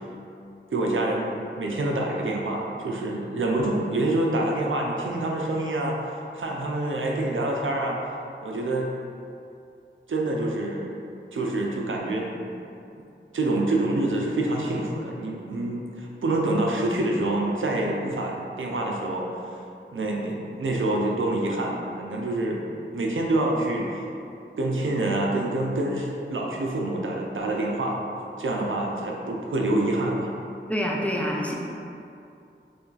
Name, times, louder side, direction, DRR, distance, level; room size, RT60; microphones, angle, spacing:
voice 1, 0.7-6.0 6.3-8.0 8.4-8.9 10.1-10.9 11.3-12.5 13.3-19.3 19.9-22.6 22.9-24.0 24.6-28.0 28.4-30.3, right 2 dB, 85° right, -1 dB, 0.4 m, -26 dB
voice 2, 30.7-31.5, equal, 5° left, -2 dB, 0.5 m, -26 dB
3.2 x 2.3 x 3.8 m, 2.6 s
wide cardioid pair, 40°, 20 cm